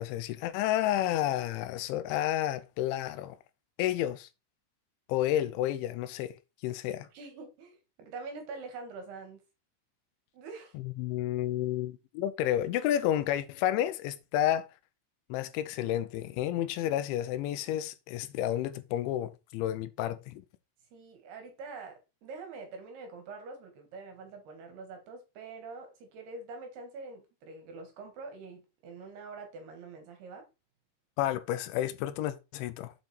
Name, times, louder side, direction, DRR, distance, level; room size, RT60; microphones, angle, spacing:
voice 1, 0.0-3.4 3.8-4.3 5.1-6.4 6.6-7.1 10.8-14.7 15.3-20.4 31.2-32.9, left 12 dB, 85° left, 3.1 m, -31 dB
voice 2, 7.1-9.4 10.3-10.8 20.9-30.5, right 4 dB, 65° right, 3.7 m, -45 dB
7.9 x 5.4 x 4.3 m
omnidirectional pair, 5.3 m